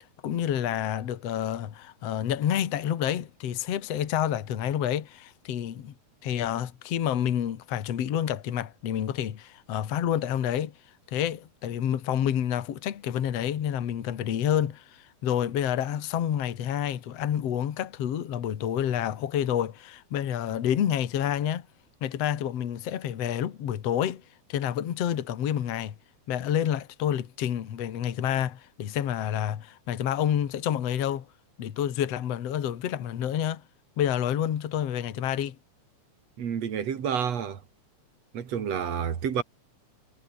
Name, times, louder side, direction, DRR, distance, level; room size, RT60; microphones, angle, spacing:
voice 1, 0.2-5.9 6.2-10.7 11.1-21.7 22.0-24.2 24.5-25.9 26.3-31.3 31.6-33.6 34.0-35.6, left 10 dB, 60° left, 2.6 m, -28 dB
voice 2, 36.4-37.6 38.3-39.4, right 8 dB, 60° right, 3.3 m, -29 dB
omnidirectional pair, 3.4 m